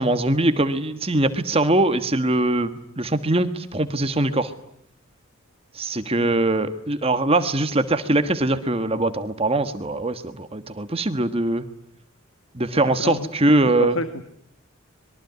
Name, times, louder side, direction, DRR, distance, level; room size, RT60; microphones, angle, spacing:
voice 1, 0.0-4.5 5.7-11.6 12.5-14.0, right 2 dB, 25° right, 10 dB, 1.4 m, -22 dB
voice 2, 13.7-14.2, left 3 dB, 65° left, 10 dB, 1.7 m, -28 dB
25.5 x 22.5 x 9.4 m, 0.71 s
head